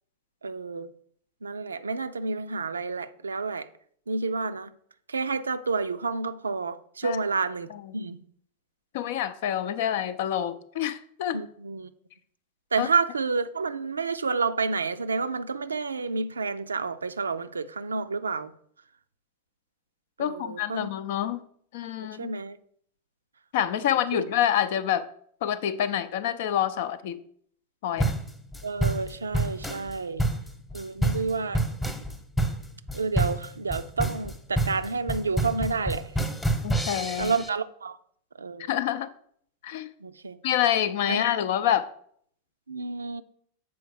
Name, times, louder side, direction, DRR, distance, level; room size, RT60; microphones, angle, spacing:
voice 1, 0.4-0.9 1.4-3.7 4.1-4.7 5.1-8.2 11.3-11.9 12.7-18.5 20.2-20.9 22.2-22.6 23.8-24.3 28.6-30.2 30.7-31.6 32.9-36.0 37.2-38.0 38.4-38.7 40.0-40.4 41.1-41.2 42.7-43.2, right 4 dB, 75° right, 0.4 m, -30 dB
voice 2, 8.9-11.4 12.8-12.9 20.2-21.4 21.7-22.3 23.5-25.0 25.4-27.2 27.8-28.1 36.6-37.3 38.7-39.1 39.6-39.9 40.4-41.9, left 10 dB, 50° left, 0.5 m, -27 dB
sound 1, 28.0-37.5, right 1 dB, 10° left, 1.0 m, -28 dB
6.9 x 4.6 x 6.5 m
figure-of-eight pair, 90°, 0 cm